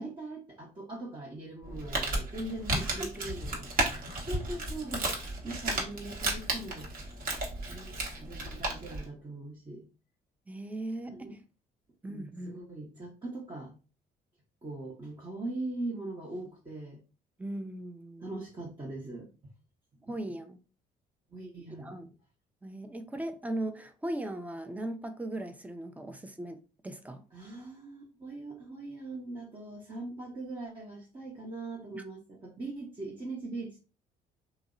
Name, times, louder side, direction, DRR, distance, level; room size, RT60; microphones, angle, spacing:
voice 1, 0.0-3.7 4.2-5.1 5.4-6.9 7.7-9.8 10.9-11.3 12.1-13.7 14.6-17.0 18.2-19.3 20.1-20.2 21.3-22.0 27.3-33.8, right 2 dB, 25° right, 0.8 m, -41 dB
Crumpling crinkling, 1.6-9.0, right 2 dB, 50° right, 0.9 m, -34 dB
voice 2, 2.8-3.3 4.8-4.9 10.5-11.4 12.0-12.6 17.4-18.3 20.1-20.6 21.8-22.1 22.6-27.2 31.9-32.0, right 1 dB, 10° right, 0.4 m, -38 dB
2.6 x 2.0 x 2.4 m
supercardioid pair, 60°, 19 cm